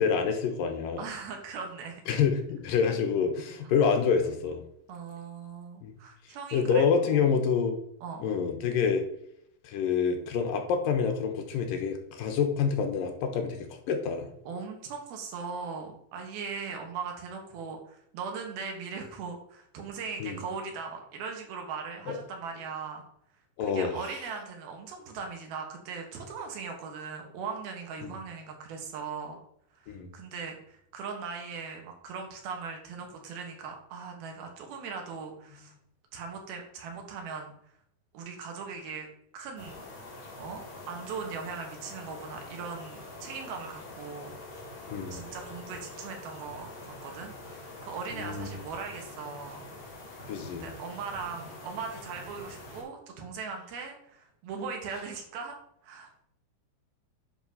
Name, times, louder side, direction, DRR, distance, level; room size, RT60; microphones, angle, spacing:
voice 1, 0.0-1.1 2.1-4.6 5.8-5.9 6.5-7.8 8.2-9.0 9.6-13.6 13.9-14.3 20.2-20.4 22.1-22.2 23.6-24.0 28.0-28.1 29.9-30.1 44.9-45.2 48.2-48.5 50.3-50.7, left 6 dB, 75° left, 5 dB, 2.6 m, -27 dB
voice 2, 1.0-2.0 3.6-3.7 4.9-6.8 7.1-7.2 8.0-8.3 14.5-23.0 23.6-29.4 29.7-35.7 36.1-37.5 38.1-39.1 39.3-39.8 40.1-44.3 45.1-49.6 50.6-55.6 55.8-56.2, right 5 dB, 85° right, 3 dB, 3.5 m, -39 dB
sound 1, 39.6-52.8, left 2 dB, 50° left, 3.3 m, -45 dB
10.0 x 4.1 x 5.5 m, 0.72 s
omnidirectional pair, 4.3 m